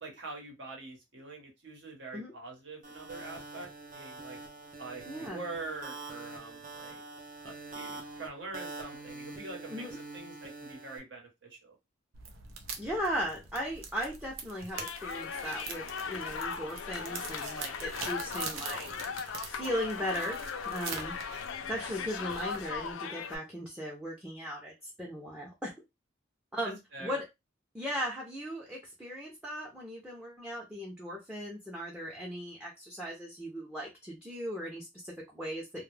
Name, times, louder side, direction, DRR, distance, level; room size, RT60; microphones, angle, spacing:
voice 1, 0.0-4.4 4.8-7.0 7.4-9.9 10.1-11.8 26.9-27.2, right 3 dB, 60° right, 1 dB, 0.9 m, -44 dB
sound 1, 2.8-11.0, right 3 dB, 45° right, 0.6 m, -45 dB
voice 2, 5.1-5.4 9.7-10.0 12.8-18.9 19.4-20.4 20.7-21.1 21.7-25.7 26.5-27.2 27.7-35.8, equal, 5° right, -1 dB, 0.5 m, -37 dB
sound 2, 12.1-22.9, right 5 dB, 90° right, 0.5 m, -44 dB
sound 3, 14.7-23.4, left 6 dB, 85° left, 0.4 m, -38 dB
2.3 x 2.0 x 3.1 m, 0.22 s
head